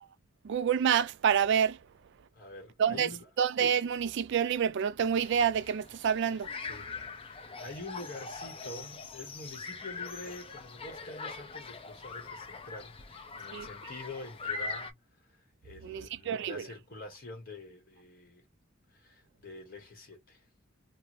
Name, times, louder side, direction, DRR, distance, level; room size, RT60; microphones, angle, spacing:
voice 1, 0.4-1.8 2.8-3.1 3.4-6.5 13.5-13.7 15.8-16.6, right 8 dB, 60° right, 0.3 m, -28 dB
voice 2, 2.3-3.3 6.6-15.0 15.3-18.4 18.9-20.4, left 2 dB, 45° left, 1.5 m, -46 dB
sound 1, 5.2-14.9, left 4 dB, 25° left, 0.6 m, -42 dB
2.7 x 2.6 x 3.0 m
head